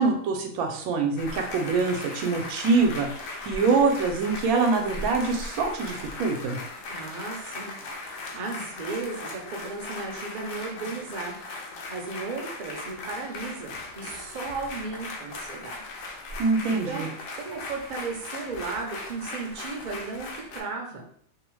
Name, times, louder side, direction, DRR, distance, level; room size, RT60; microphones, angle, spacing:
voice 1, 0.0-3.1 3.5-6.6 16.4-17.1, right 4 dB, 90° right, 3 dB, 1.0 m, -24 dB
sound 1, 1.2-20.6, left 2 dB, 75° left, 1.0 m, -38 dB
voice 2, 6.9-11.4 11.9-15.8 16.3-16.4 16.7-21.0, right 4 dB, 55° right, 1 dB, 0.5 m, -35 dB
2.7 x 2.0 x 3.0 m, 0.63 s
omnidirectional pair, 1.5 m